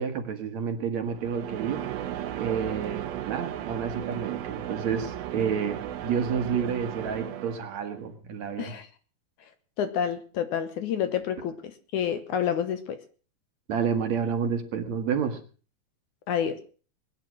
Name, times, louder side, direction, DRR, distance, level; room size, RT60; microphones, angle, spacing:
voice 1, 0.0-1.9 2.3-8.7 13.7-15.4, right 7 dB, 55° right, 7 dB, 2.5 m, -30 dB
sound 1, 1.1-8.0, right 12 dB, 80° right, 3.0 m, -35 dB
voice 2, 9.8-13.0 16.3-16.6, left 8 dB, 65° left, 10 dB, 2.2 m, -29 dB
21.5 x 10.0 x 6.2 m, 0.41 s
omnidirectional pair, 4.2 m